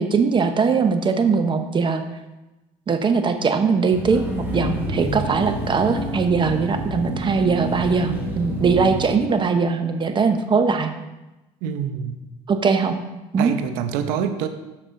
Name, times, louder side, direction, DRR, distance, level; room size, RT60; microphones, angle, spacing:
voice 1, 0.0-2.0 2.9-4.2 4.5-10.9 12.5-13.0 13.3-13.5, right 5 dB, 35° right, 8 dB, 0.9 m, -20 dB
sound 1, 3.9-9.1, equal, 15° right, 2.7 m, -28 dB
voice 2, 11.6-12.2 13.4-14.5, right 8 dB, 85° right, 8 dB, 0.8 m, -26 dB
7.9 x 6.1 x 3.8 m, 1.0 s
supercardioid pair, 85°, 14 cm